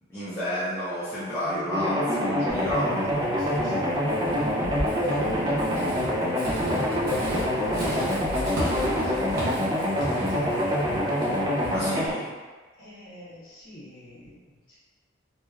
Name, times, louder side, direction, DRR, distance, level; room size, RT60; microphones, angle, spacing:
voice 1, 0.1-2.8 11.7-12.3, equal, 10° left, -14 dB, 0.6 m, -31 dB
voice 2, 1.4-10.8 11.8-12.3 12.8-14.8, equal, 45° left, -11 dB, 1.2 m, -41 dB
sound 1, 1.7-12.1, equal, 20° right, 0.3 m, -26 dB
Walk footsteps / Squeak, 2.5-12.1, equal, 50° right, 0.7 m, -34 dB
3.1 x 2.1 x 2.3 m, 1.4 s
head